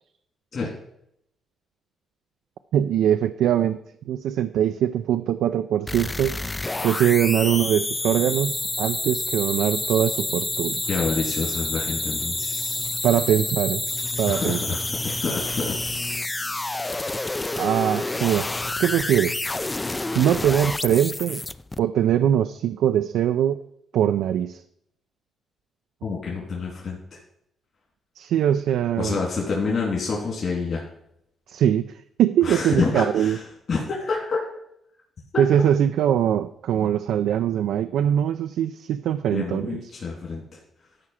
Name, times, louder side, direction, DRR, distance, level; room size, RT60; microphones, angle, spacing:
voice 1, 2.7-3.8 4.1-6.4 6.8-10.8 13.0-13.8 14.2-14.6 17.6-18.5 18.8-19.5 20.1-21.4 21.8-23.6 23.9-24.6 28.2-29.2 31.5-31.9 32.2-33.4 35.4-39.8, right 10 dB, 80° right, 9 dB, 0.4 m, -22 dB
sound 1, 5.9-21.8, left 2 dB, 15° left, 0.4 m, -28 dB
voice 2, 10.9-12.8 14.2-15.8 26.0-27.0 29.0-30.8 32.4-34.4 35.3-35.4 39.3-40.6, left 4 dB, 50° left, -4 dB, 3.0 m, -28 dB
13.0 x 4.8 x 5.7 m, 0.75 s
cardioid pair, 90°, 0 cm